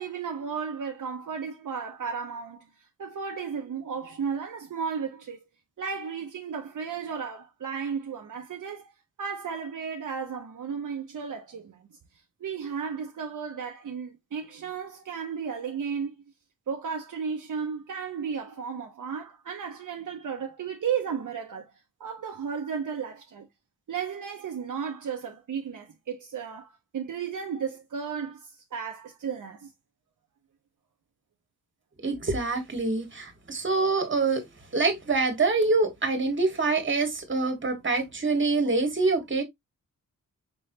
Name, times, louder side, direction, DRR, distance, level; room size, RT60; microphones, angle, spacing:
voice 1, 0.0-5.4 5.8-8.9 9.2-11.8 12.4-16.1 16.7-21.7 22.0-23.5 23.9-29.7, right 6 dB, 65° right, 0.8 m, -34 dB
voice 2, 32.0-34.5 34.7-39.4, right 3 dB, 35° right, 1.7 m, -25 dB
5.4 x 3.3 x 2.7 m
wide cardioid pair, 100°, 33 cm